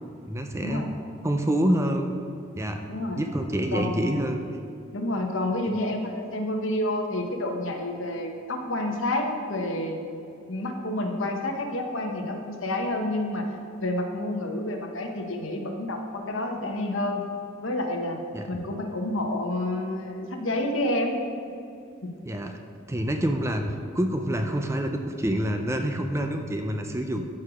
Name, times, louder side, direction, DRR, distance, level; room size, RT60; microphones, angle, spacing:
voice 1, 0.3-0.9 1.2-2.2 2.6-2.8 3.1-4.4 18.3-18.5 22.2-22.5 22.9-27.2, right 1 dB, 15° right, 4 dB, 0.5 m, -27 dB
voice 2, 2.9-3.2 3.7-4.1 4.9-10.0 10.5-17.2 17.6-18.2 18.5-21.2 22.0-22.1 27.1-27.2, left 1 dB, 65° left, 3 dB, 1.1 m, -29 dB
13.5 x 4.7 x 5.0 m, 2.4 s
head